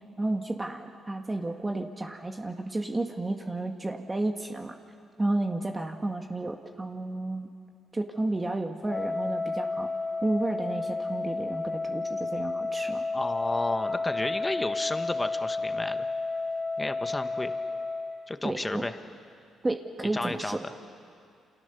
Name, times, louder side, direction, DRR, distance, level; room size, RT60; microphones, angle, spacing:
voice 1, 0.2-4.7 5.2-7.5 7.9-9.9 10.2-13.0 18.4-18.8 19.6-20.6, right 2 dB, 20° right, 4 dB, 1.6 m, -31 dB
Wind instrument woodwind instrument, 8.8-18.2, left 3 dB, 35° left, 2.4 m, -31 dB
voice 2, 13.1-16.1 16.8-17.5 18.3-19.0 20.1-20.6, left 2 dB, 15° left, 8 dB, 1.5 m, -32 dB
29.0 x 27.5 x 7.0 m, 2.4 s
cardioid pair, 90°, 0 cm